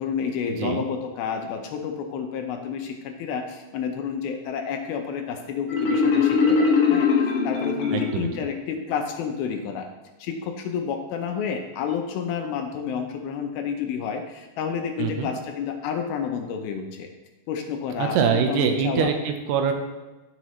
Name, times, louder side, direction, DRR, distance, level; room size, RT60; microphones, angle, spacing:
voice 1, 0.0-9.9 10.2-17.1 17.5-19.1, left 7 dB, 75° left, 4 dB, 2.5 m, -30 dB
Marimba xylophone, 5.7-8.5, left 5 dB, 50° left, 2.4 m, -21 dB
voice 2, 7.9-8.3 15.0-15.3 18.0-19.7, right 7 dB, 80° right, 5 dB, 2.9 m, -24 dB
15.0 x 5.9 x 3.1 m, 1.1 s
omnidirectional pair, 4.7 m